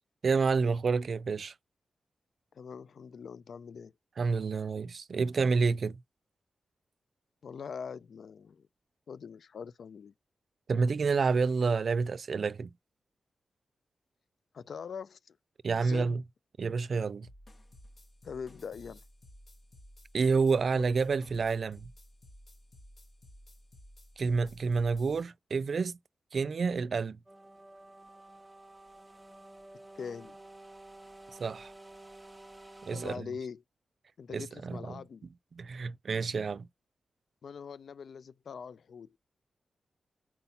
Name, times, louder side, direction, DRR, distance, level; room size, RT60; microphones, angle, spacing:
voice 1, 0.2-1.5 4.2-6.0 10.7-12.7 15.6-16.2 16.6-17.3 20.1-21.9 24.2-26.0 26.3-27.2 31.4-31.7 32.8-33.2 34.3-35.0 35.5-36.7, right 4 dB, 65° right, 0.4 m, -29 dB
voice 2, 2.5-3.9 7.4-8.7 9.1-10.1 14.5-15.4 15.8-16.2 18.2-19.0 20.7-20.8 30.0-30.4 32.9-33.6 34.2-35.3 37.4-39.2, left 6 dB, 75° left, 0.4 m, -42 dB
sound 1, 17.2-25.2, equal, 50° left, 1.3 m, -55 dB
sound 2, 27.3-33.2, right 1 dB, 15° right, 0.9 m, -51 dB
4.3 x 4.2 x 5.5 m
cardioid pair, 60°, 0 cm